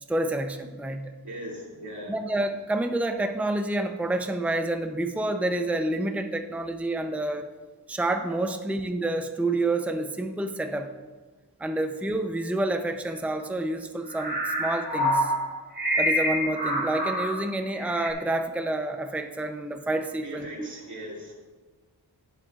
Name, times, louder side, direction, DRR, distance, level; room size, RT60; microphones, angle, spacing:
voice 1, 0.1-1.1 2.1-7.5 7.9-10.9 11.6-15.3 16.0-20.7, right 2 dB, 5° right, 5 dB, 0.6 m, -28 dB
voice 2, 1.2-2.2 20.2-21.3, equal, 80° right, -3 dB, 2.8 m, -39 dB
sound 1, 14.1-17.3 17.7-18.1, equal, 25° right, 3.1 m, -26 dB
18.0 x 7.9 x 2.5 m, 1.3 s
wide cardioid pair, 90°, 40 cm